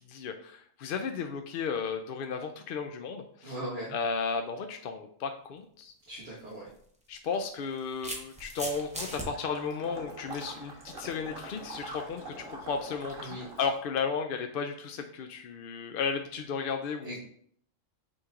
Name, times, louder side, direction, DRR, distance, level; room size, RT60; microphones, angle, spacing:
voice 1, 0.1-3.5 3.9-5.9 7.1-17.2, left 5 dB, 60° left, 5 dB, 0.6 m, -34 dB
voice 2, 3.4-4.0 6.1-6.7 13.2-13.5 17.0-17.2, right 1 dB, 50° right, -7 dB, 1.8 m, -39 dB
sound 1, 6.1-6.3 7.3-9.3, right 1 dB, 5° right, 0.8 m, -38 dB
Water / Liquid, 9.0-13.8, right 1 dB, 90° right, 2.2 m, -44 dB
8.8 x 3.1 x 3.7 m, 0.63 s
omnidirectional pair, 1.3 m